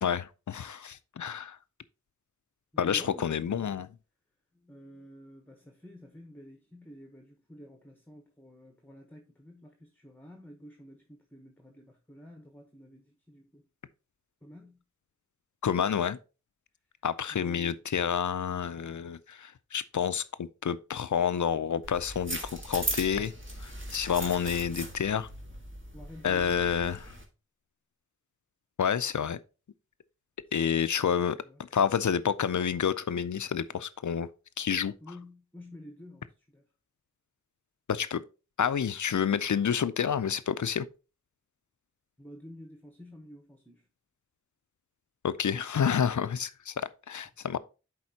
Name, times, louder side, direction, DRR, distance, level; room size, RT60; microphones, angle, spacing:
voice 1, 0.0-1.6 2.8-3.9 15.6-16.2 17.0-23.3 23.6-25.3 26.2-27.0 28.8-29.4 30.5-31.4 31.7-34.3 34.6-34.9 37.9-38.2 38.6-40.9 45.2-47.6, left 7 dB, 85° left, 0.5 m, -29 dB
voice 2, 2.7-3.9 4.5-13.6 14.4-14.8 25.9-27.0 31.2-31.6 35.0-36.6 42.2-43.9, equal, 5° left, 1.0 m, -50 dB
sound 1, 21.8-27.2, right 1 dB, 45° right, 1.7 m, -38 dB
10.5 x 4.2 x 2.8 m
wide cardioid pair, 50°, 29 cm